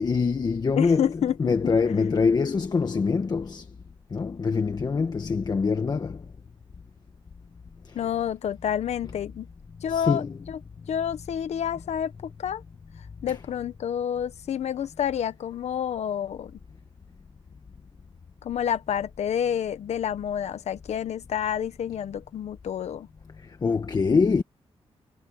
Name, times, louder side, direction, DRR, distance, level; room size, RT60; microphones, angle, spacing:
voice 1, 0.0-1.1 1.4-3.7 4.1-6.2 9.9-10.3 23.6-24.4, left 5 dB, 40° left, 1.4 m, -24 dB
voice 2, 0.7-1.5 7.9-9.5 9.8-10.6 10.9-12.6 13.2-16.5 18.4-23.1, left 9 dB, 80° left, 1.2 m, -29 dB
wide cardioid pair, 130°, 11 cm